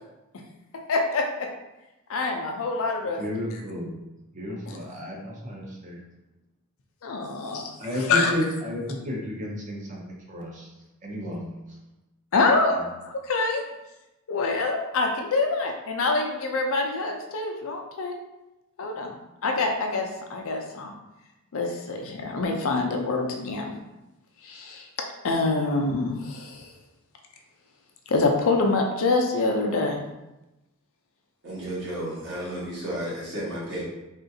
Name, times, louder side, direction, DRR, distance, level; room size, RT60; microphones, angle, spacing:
voice 1, 0.9-1.5 2.1-3.2 7.0-7.7 8.1-8.3 12.3-12.8 13.0-13.6 14.3-18.2 18.8-19.1 19.4-20.9 21.5-23.7 24.4-24.9 25.2-26.7 28.1-30.0, left 3 dB, 65° left, 3 dB, 0.5 m, -25 dB
voice 2, 3.2-4.0 4.3-6.0 7.8-10.7 11.0-11.8 12.7-12.9, left 1 dB, 35° right, -1 dB, 0.6 m, -32 dB
voice 3, 31.4-33.8, right 1 dB, 55° right, -6 dB, 1.3 m, -32 dB
3.6 x 2.4 x 2.7 m, 0.97 s
head